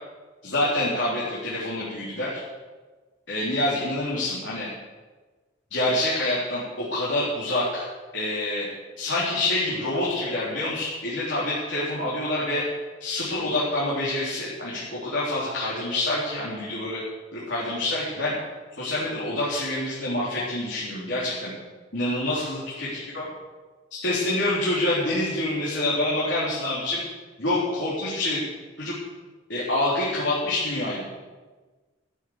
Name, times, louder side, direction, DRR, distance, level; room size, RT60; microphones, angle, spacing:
voice 1, 0.4-2.3 3.3-4.7 5.7-7.9 8.1-8.7 9.0-12.6 13.0-17.0 17.3-18.4 18.8-21.5 21.9-22.9 23.1-23.2 23.9-27.0 27.4-28.4 28.8-28.9 29.5-31.0, left 1 dB, 80° left, -8 dB, 3.7 m, -26 dB
13.5 x 8.1 x 7.9 m, 1.3 s
head